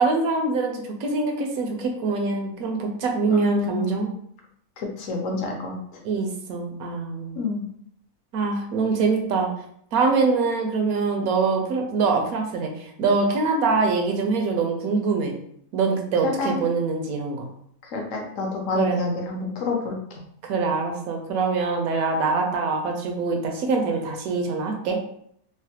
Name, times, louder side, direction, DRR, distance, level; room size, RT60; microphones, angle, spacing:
voice 1, 0.0-4.1 6.0-7.4 8.3-9.5 9.9-15.4 15.7-17.5 18.7-19.1 20.4-25.0, right 4 dB, 75° right, 3 dB, 1.0 m, -24 dB
voice 2, 3.3-4.1 4.8-5.8 7.4-7.6 16.2-16.6 17.9-20.0, left 3 dB, 65° left, 1 dB, 0.9 m, -27 dB
3.1 x 2.1 x 2.8 m, 0.68 s
omnidirectional pair, 1.6 m